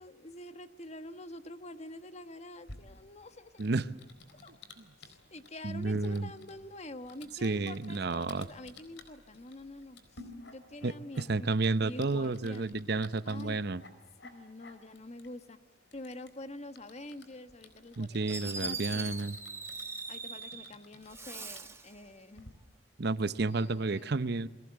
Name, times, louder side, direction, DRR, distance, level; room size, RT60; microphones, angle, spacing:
voice 1, 0.0-3.7 4.3-4.6 5.0-11.4 11.8-12.8 13.2-13.6 14.2-15.6 15.9-19.3 20.1-22.5 23.5-24.2, left 1 dB, 35° left, 10 dB, 1.3 m, -47 dB
Typing, 2.6-22.5, left 3 dB, 70° left, 4.1 m, -56 dB
voice 2, 5.6-6.3 7.4-8.5 10.8-13.8 18.0-19.4 23.0-24.5, right 3 dB, 60° right, 14 dB, 0.8 m, -31 dB
Fireworks, 17.9-18.0 18.3-20.7 21.1-21.9, right 3 dB, 15° right, 1.8 m, -40 dB
29.5 x 22.0 x 7.9 m, 1.0 s
head